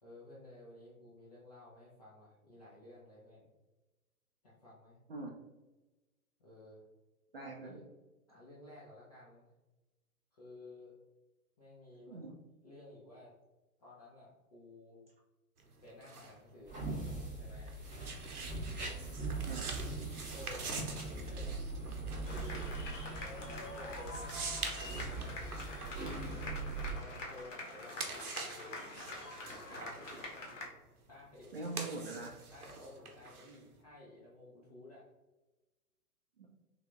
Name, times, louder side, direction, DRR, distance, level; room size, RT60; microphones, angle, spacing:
voice 1, 0.0-3.4 4.4-5.0 6.4-6.8 7.6-7.9 8.3-9.5 10.3-11.0 11.6-12.3 12.6-13.3 13.8-15.1 15.8-17.8 20.3-21.6 22.2-25.4 26.9-28.5 29.5-30.4 31.1-31.6 32.5-35.1, left 2 dB, 25° left, -7 dB, 0.5 m, -54 dB
voice 2, 7.3-7.8 12.1-12.4 19.5-19.7 31.5-32.4 36.4-36.5, right 3 dB, 40° right, -2 dB, 0.4 m, -43 dB
sound 1, 15.6-27.3 27.7-33.8, right 4 dB, 70° right, 0.8 m, -46 dB
sound 2, 16.7-27.0, right 3 dB, 10° right, 0.7 m, -41 dB
sound 3, 22.2-30.7, left 2 dB, 50° left, 1.0 m, -46 dB
3.2 x 3.2 x 2.4 m, 1.1 s
figure-of-eight pair, 120°, 46 cm